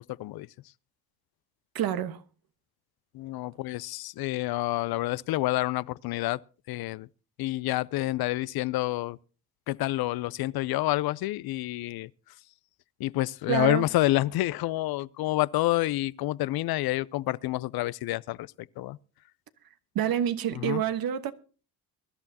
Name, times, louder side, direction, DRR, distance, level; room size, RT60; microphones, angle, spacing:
voice 1, 1.7-2.2 13.5-13.8 19.9-21.3, right 10 dB, 65° right, 1.2 m, -27 dB
voice 2, 3.1-6.4 6.7-7.1 7.4-9.2 9.7-12.1 13.0-18.5 18.8-19.0 20.5-20.8, left 17 dB, 65° left, 0.5 m, -28 dB
23.0 x 12.0 x 2.8 m
supercardioid pair, 65°, 39 cm